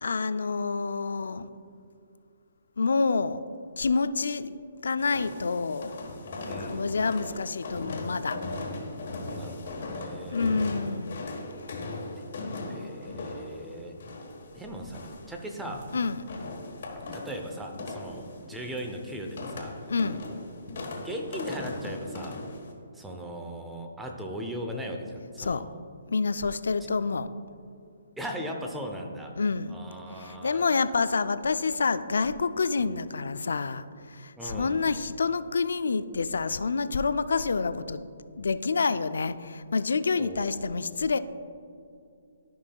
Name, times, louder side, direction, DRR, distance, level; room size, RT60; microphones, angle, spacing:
voice 1, 0.0-1.5 2.8-3.4 3.8-5.9 6.6-8.4 10.3-11.3 15.9-16.2 19.9-20.2 25.4-25.7 26.1-27.3 29.4-29.8 30.2-38.1 38.4-41.2, left 4 dB, 80° left, 13 dB, 0.3 m, -28 dB
sound 1, 5.0-22.7, left 2 dB, 60° left, 1.3 m, -38 dB
voice 2, 6.4-6.8 9.3-10.6 12.2-12.3 12.7-13.9 14.5-15.9 17.1-19.8 21.0-22.4 22.9-25.8 26.8-26.9 28.2-29.3 29.7-30.6 32.8-33.0 34.4-34.9 40.2-40.8, equal, 5° right, 2 dB, 0.7 m, -38 dB
13.0 x 5.4 x 2.3 m, 2.5 s
hypercardioid pair, 155°, 0 cm